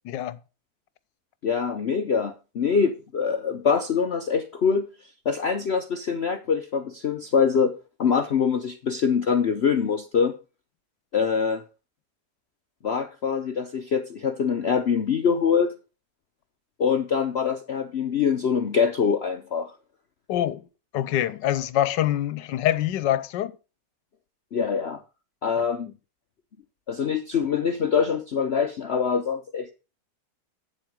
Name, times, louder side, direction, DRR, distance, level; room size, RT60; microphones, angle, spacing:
voice 1, 0.1-0.4 20.3-20.7 20.9-23.5, left 12 dB, 75° left, 1.3 m, -25 dB
voice 2, 1.4-4.9 5.2-10.3 11.1-11.6 12.8-15.7 16.8-19.7 24.5-25.0 25.4-25.9 26.9-29.7, left 6 dB, 60° left, 0.7 m, -24 dB
8.8 x 7.7 x 5.0 m
omnidirectional pair, 2.0 m